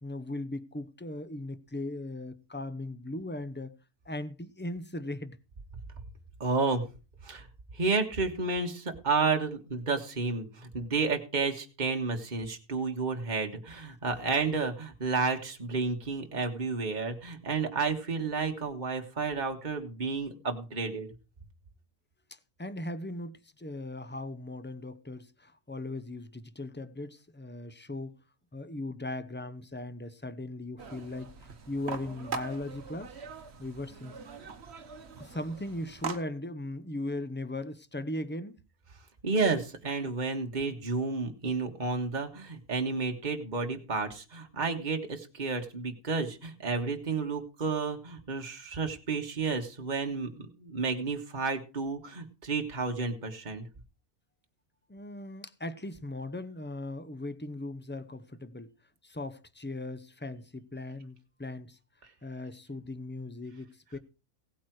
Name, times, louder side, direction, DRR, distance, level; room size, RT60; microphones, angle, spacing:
voice 1, 0.0-3.8 4.1-5.4 22.3-28.2 28.5-33.1 33.6-34.2 35.2-38.6 54.9-58.7 59.0-61.8 62.2-64.0, left 1 dB, 15° left, 0.4 m, -38 dB
voice 2, 6.4-6.8 7.2-7.5 7.7-21.1 39.2-53.7, right 4 dB, 30° right, 1.8 m, -31 dB
sound 1, 30.8-36.2, right 5 dB, 50° right, 1.4 m, -42 dB
17.0 x 8.7 x 4.8 m
omnidirectional pair, 1.6 m